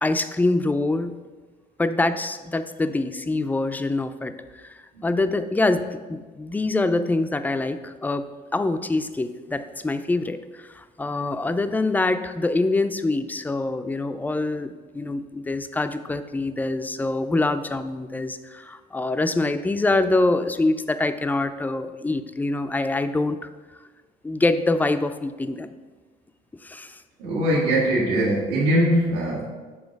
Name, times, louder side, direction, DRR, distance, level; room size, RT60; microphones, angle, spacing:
voice 1, 0.0-1.2 1.8-23.5 24.2-25.7 26.6-27.0, left 2 dB, 10° left, 10 dB, 0.3 m, -25 dB
voice 2, 27.2-29.4, right 1 dB, 75° right, -8 dB, 1.6 m, -21 dB
7.1 x 3.3 x 5.1 m, 1.3 s
cardioid pair, 110°, 17 cm